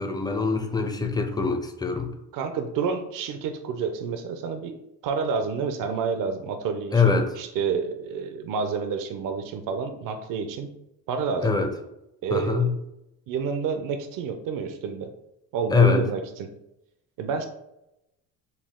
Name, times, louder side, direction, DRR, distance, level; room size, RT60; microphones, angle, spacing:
voice 1, 0.0-2.1 6.9-7.3 11.4-11.7 12.3-12.7 15.7-16.1, left 5 dB, 10° left, 0.5 m, -23 dB
voice 2, 2.3-4.8 5.0-10.7 11.1-11.5 12.2-12.7 13.3-15.1 15.5-16.5 17.2-17.5, right 5 dB, 65° right, 0.6 m, -29 dB
4.1 x 2.3 x 3.6 m
cardioid pair, 95°, 36 cm